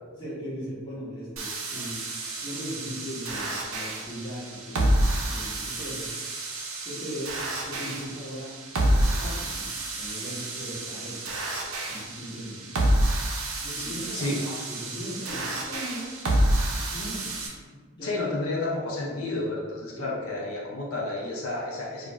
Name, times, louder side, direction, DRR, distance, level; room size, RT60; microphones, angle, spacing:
voice 1, 0.2-2.0 2.4-6.1 6.8-7.3 7.6-8.5 8.8-9.7 10.0-11.2 11.8-12.7 13.5-16.1 16.7-18.2 19.9-20.1, equal, 20° left, -10 dB, 1.1 m, -38 dB
sound 1, 1.4-17.5, right 1 dB, 80° right, 0.5 m, -29 dB
voice 2, 13.8-14.4 18.0-22.1, left 2 dB, 80° left, -3 dB, 0.5 m, -31 dB
2.4 x 2.4 x 3.0 m, 1.4 s
head